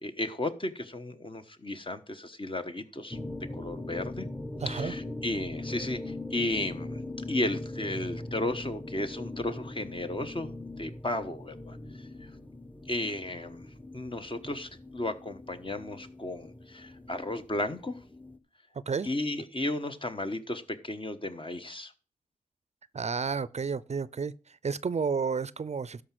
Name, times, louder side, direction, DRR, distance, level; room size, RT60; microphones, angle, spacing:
voice 1, 0.0-3.2 3.5-4.3 4.7-7.0 7.3-12.3 12.9-13.7 13.9-18.0 19.0-21.9, left 2 dB, 35° left, 1.2 m, -34 dB
sound 1, 3.1-18.4, left 2 dB, 10° left, 1.0 m, -41 dB
voice 2, 4.6-4.9 18.9-19.1 22.9-24.3 24.6-26.0, right 5 dB, 55° right, 0.5 m, -31 dB
12.5 x 5.0 x 6.0 m
cardioid pair, 50°, 14 cm